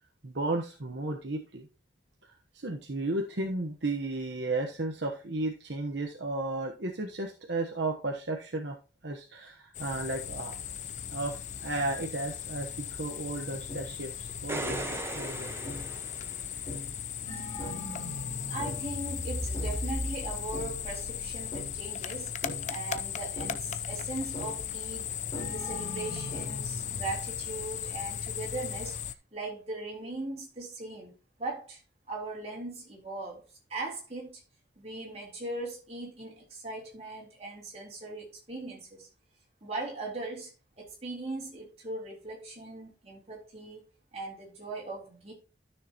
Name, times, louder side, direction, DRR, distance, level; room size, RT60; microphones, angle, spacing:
voice 1, 0.2-1.7 2.5-8.8 9.0-10.5 11.1-15.5, right 2 dB, 65° right, 1.1 m, -34 dB
sound 1, 9.7-29.1, left 9 dB, 40° left, 0.5 m, -37 dB
sound 2, 12.8-13.1 13.7-14.2 14.7-15.0 15.6-16.1 16.7-22.0 22.4-22.9 23.4-23.8 24.3-24.8 25.3-27.2, equal, 20° left, 5.6 m, -39 dB
sound 3, 14.3-16.9 19.9-20.0, right 2 dB, 15° right, 1.1 m, -38 dB
voice 2, 18.5-22.3 22.7-25.2 25.5-29.0 29.3-31.1 31.4-31.8 32.1-33.4 33.7-34.4 34.8-39.1 39.6-40.5 40.8-45.3, right 2 dB, 35° right, 3.8 m, -39 dB
12.5 x 6.6 x 2.9 m
head